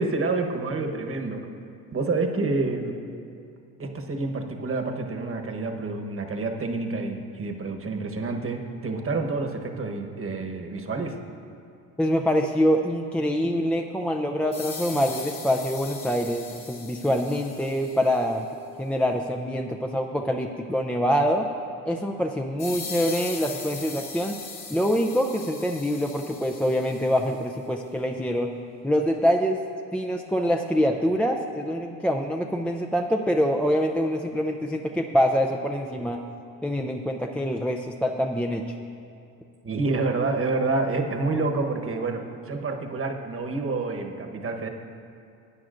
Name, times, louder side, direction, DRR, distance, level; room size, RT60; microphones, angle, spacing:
voice 1, 0.0-1.5 1.9-2.9 3.8-11.2 39.6-44.7, right 3 dB, 30° right, 4 dB, 1.2 m, -28 dB
voice 2, 12.0-18.5 18.8-21.5 21.8-24.4 24.7-28.6 28.8-29.6 29.9-36.2 36.6-38.6, equal, 5° left, 2 dB, 0.4 m, -25 dB
sound 1, 14.5-18.3 22.6-27.3, left 5 dB, 45° left, 1.8 m, -39 dB
16.5 x 9.2 x 2.6 m, 2.5 s
supercardioid pair, 80°, 41 cm